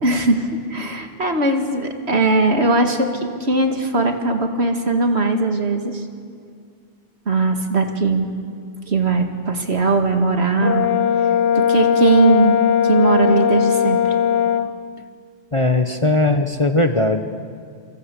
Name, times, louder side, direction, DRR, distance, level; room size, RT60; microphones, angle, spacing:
voice 1, 0.0-6.0 7.3-8.3 8.9-10.9 11.5-14.0, right 3 dB, 60° right, 5 dB, 2.4 m, -19 dB
Brass instrument, 10.6-14.7, left 8 dB, 75° left, 1.3 m, -18 dB
voice 2, 15.5-17.2, left 2 dB, 25° left, 7 dB, 1.1 m, -18 dB
28.5 x 25.0 x 8.4 m, 2.2 s
omnidirectional pair, 1.3 m